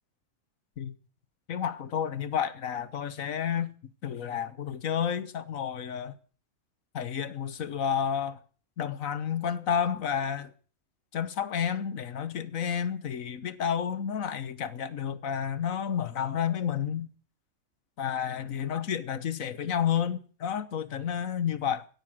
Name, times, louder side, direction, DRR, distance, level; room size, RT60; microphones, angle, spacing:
voice 1, 1.5-3.7 4.0-6.2 6.9-8.4 8.8-10.5 11.1-17.1 18.0-21.9, left 8 dB, 90° left, 1.5 m, -30 dB
16.0 x 8.7 x 7.8 m
omnidirectional pair, 1.4 m